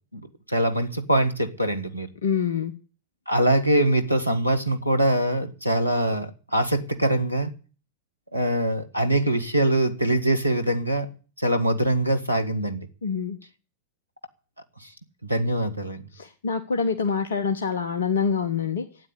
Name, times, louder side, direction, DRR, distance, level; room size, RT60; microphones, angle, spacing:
voice 1, 0.5-2.1 3.3-7.5 8.3-11.1 11.4-12.9 15.2-16.0, right 1 dB, 85° right, 8 dB, 1.6 m, -23 dB
voice 2, 2.2-2.7 13.0-13.4 16.1-18.8, left 6 dB, 65° left, 7 dB, 1.1 m, -26 dB
12.5 x 9.6 x 9.6 m, 0.37 s
figure-of-eight pair, 90°, 0 cm